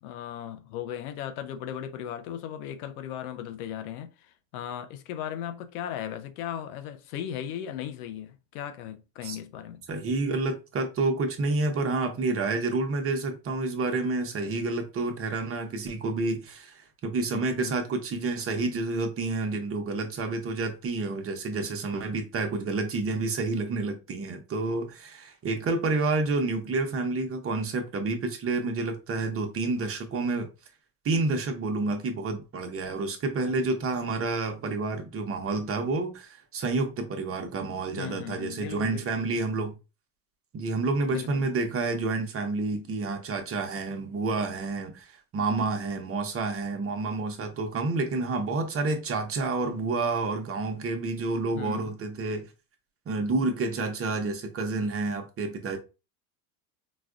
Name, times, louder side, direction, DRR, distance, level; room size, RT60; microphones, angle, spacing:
voice 1, 0.0-9.9 17.3-17.8 38.0-39.3 41.1-41.5 51.6-51.9, left 10 dB, 80° left, 0.7 m, -37 dB
voice 2, 9.9-30.5 31.0-39.8 40.5-52.5 53.1-55.8, right 3 dB, 30° right, 0.8 m, -29 dB
4.1 x 2.3 x 2.4 m
supercardioid pair, 100°, 44 cm